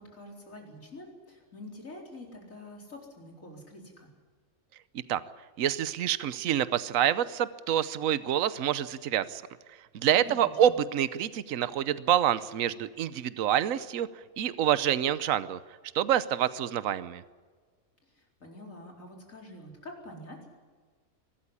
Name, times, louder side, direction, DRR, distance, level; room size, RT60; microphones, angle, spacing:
voice 1, 0.0-4.1 10.2-10.7 18.1-20.5, left 1 dB, 65° left, 0 dB, 4.7 m, -46 dB
voice 2, 5.6-9.4 9.9-14.1 14.4-15.6 15.9-17.2, right 10 dB, 70° right, 15 dB, 1.2 m, -27 dB
23.0 x 13.0 x 9.9 m, 1.5 s
omnidirectional pair, 1.5 m